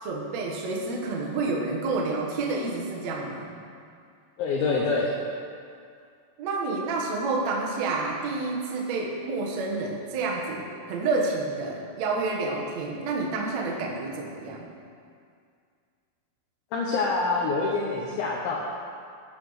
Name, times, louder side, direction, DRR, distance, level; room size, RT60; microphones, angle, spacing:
voice 1, 0.0-3.5 6.4-14.7, right 3 dB, 90° right, -2 dB, 1.5 m, -29 dB
voice 2, 4.4-5.2 16.7-18.6, left 3 dB, 75° left, -3 dB, 3.1 m, -26 dB
16.5 x 5.8 x 6.5 m, 2.3 s
omnidirectional pair, 5.7 m